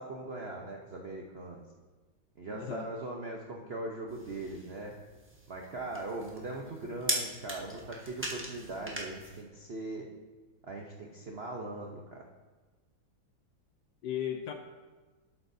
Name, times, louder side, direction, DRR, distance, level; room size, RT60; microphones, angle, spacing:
voice 1, 0.0-1.6 2.4-5.0 5.5-10.1 10.7-12.2, right 2 dB, 65° right, 0 dB, 0.6 m, -40 dB
voice 2, 2.5-2.9 14.0-14.5, left 10 dB, 70° left, 5 dB, 1.0 m, -35 dB
sound 1, 4.1-9.4, right 1 dB, 10° right, 0.8 m, -40 dB
12.5 x 8.0 x 2.7 m, 1.3 s
omnidirectional pair, 2.2 m